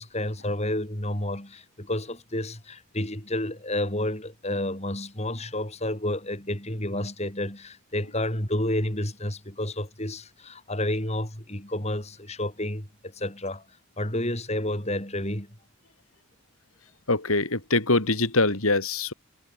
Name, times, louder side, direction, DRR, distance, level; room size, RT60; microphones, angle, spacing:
voice 1, 0.0-13.6 14.0-15.6, left 1 dB, 30° left, 6.2 m, -30 dB
voice 2, 17.1-19.1, left 2 dB, 75° left, 4.3 m, -23 dB
head